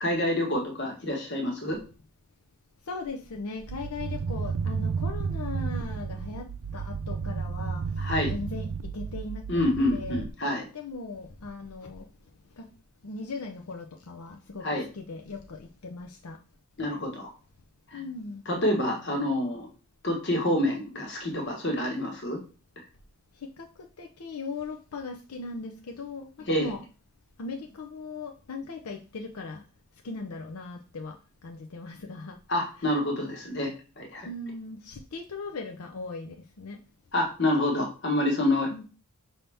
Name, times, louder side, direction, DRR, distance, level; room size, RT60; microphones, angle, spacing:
voice 1, 0.0-1.8 8.0-8.3 9.5-10.6 14.6-14.9 16.8-17.3 17.9-18.0 18.5-19.7 20.0-22.4 26.5-26.7 32.5-34.3 37.1-38.8, left 1 dB, 50° left, 1 dB, 1.2 m, -27 dB
voice 2, 2.8-8.7 8.9-9.5 9.9-10.2 10.7-12.1 12.5-12.7 13.0-16.4 17.9-18.4 23.3-26.8 27.4-29.6 30.0-31.2 31.4-32.4 32.8-32.9 34.2-36.8 38.7-38.8, left 3 dB, 85° left, 3 dB, 0.6 m, -38 dB
sound 1, 3.7-10.3, right 5 dB, 80° right, 0.4 m, -32 dB
5.5 x 2.8 x 3.4 m, 0.35 s
head